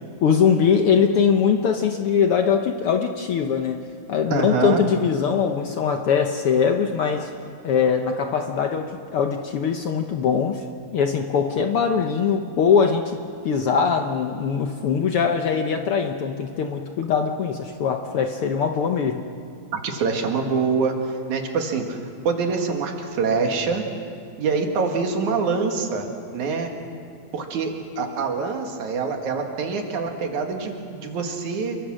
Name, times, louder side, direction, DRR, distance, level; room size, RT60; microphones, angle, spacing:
voice 1, 0.2-7.3 7.6-10.7 10.9-19.2, left 6 dB, 65° left, 5 dB, 1.4 m, -22 dB
voice 2, 4.3-4.9 19.7-21.0 21.3-22.0 22.2-23.9 24.4-26.7 27.3-31.8, right 4 dB, 75° right, 3 dB, 3.3 m, -25 dB
28.0 x 23.5 x 6.3 m, 2.3 s
omnidirectional pair, 3.4 m